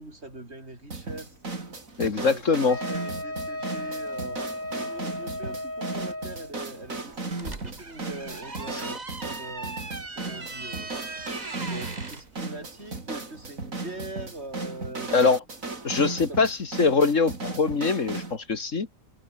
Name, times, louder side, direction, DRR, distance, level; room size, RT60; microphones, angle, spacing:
voice 1, 0.0-1.4 2.1-11.3 11.5-15.2 16.2-16.4, right 2 dB, 45° right, 5.7 m, -42 dB
sound 1, 0.9-18.4, right 3 dB, 65° right, 4.1 m, -36 dB
voice 2, 2.0-2.8 15.1-15.4 15.8-18.9, left 4 dB, 60° left, 2.3 m, -23 dB
Wind instrument woodwind instrument, 2.7-6.5, left 1 dB, 30° left, 7.0 m, -35 dB
sound 2, 7.1-12.2, right 3 dB, 30° right, 2.0 m, -39 dB
omnidirectional pair, 1.5 m